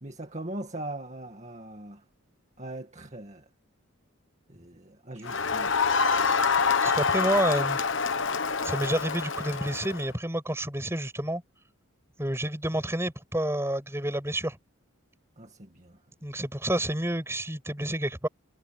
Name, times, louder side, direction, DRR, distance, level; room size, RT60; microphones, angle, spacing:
voice 1, 0.0-2.0 2.6-3.5 4.5-5.7 15.4-16.0, right 1 dB, 35° right, 2.1 m, -40 dB
Crowd, 5.2-10.1, left 5 dB, 60° left, 1.2 m, -26 dB
voice 2, 6.8-7.8 8.6-11.4 12.2-14.6 16.2-18.3, right 1 dB, 10° right, 6.0 m, -29 dB
head